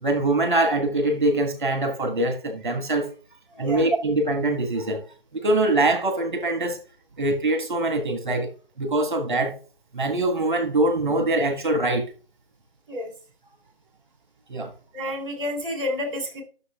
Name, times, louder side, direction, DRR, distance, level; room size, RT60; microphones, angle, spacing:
voice 1, 0.0-3.1 3.6-5.0 5.3-6.8 7.2-8.5 8.8-9.5 9.9-12.1 14.5-14.7, right 2 dB, 50° right, 1.4 m, -23 dB
voice 2, 3.5-3.9 12.9-13.1 14.9-16.4, left 1 dB, 30° right, 3.4 m, -30 dB
12.5 x 6.9 x 2.3 m
figure-of-eight pair, 155°, 31 cm